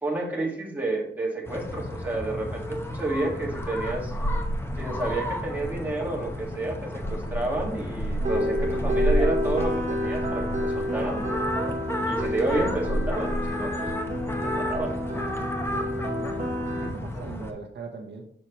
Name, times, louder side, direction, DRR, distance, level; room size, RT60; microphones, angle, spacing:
voice 1, 0.0-4.1 4.8-11.2 12.1-13.9 14.4-14.9 17.1-17.2, right 2 dB, 10° right, -3 dB, 1.8 m, -30 dB
sound 1, 1.4-17.5, equal, 10° left, 0.8 m, -31 dB
sound 2, 6.9-9.9, left 2 dB, 55° left, 1.7 m, -46 dB
sound 3, 8.2-16.9, left 1 dB, 40° right, 1.2 m, -30 dB
voice 2, 15.9-16.5 16.8-18.2, right 4 dB, 70° right, 2 dB, 1.0 m, -40 dB
6.6 x 5.7 x 3.0 m, 0.64 s
wide cardioid pair, 130°, 19 cm